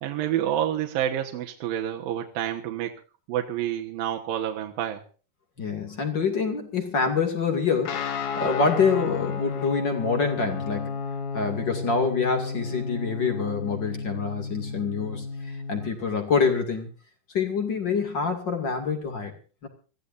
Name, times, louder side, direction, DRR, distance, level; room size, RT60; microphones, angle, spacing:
voice 1, 0.0-2.9 3.3-5.0, right 11 dB, 70° right, 2 dB, 2.9 m, -28 dB
voice 2, 5.6-11.0 11.3-15.3 15.7-16.9 17.3-19.3 19.6-19.7, left 5 dB, 35° left, 5 dB, 2.5 m, -26 dB
Guitar, 7.8-15.9, left 5 dB, 60° left, 2.9 m, -32 dB
25.5 x 15.5 x 2.6 m, 0.37 s
omnidirectional pair, 4.3 m